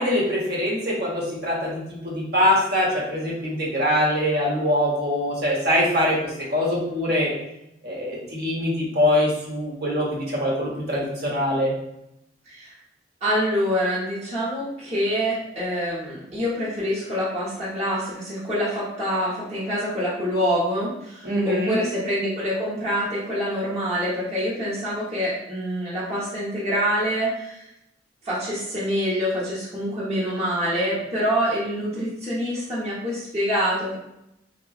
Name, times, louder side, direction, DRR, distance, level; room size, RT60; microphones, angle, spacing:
voice 1, 0.0-7.3 7.8-11.7 21.2-21.8, left 1 dB, 60° right, -4 dB, 1.0 m, -23 dB
voice 2, 13.2-27.7 28.2-34.0, equal, 35° right, -10 dB, 1.0 m, -26 dB
3.7 x 2.3 x 2.4 m, 0.83 s
head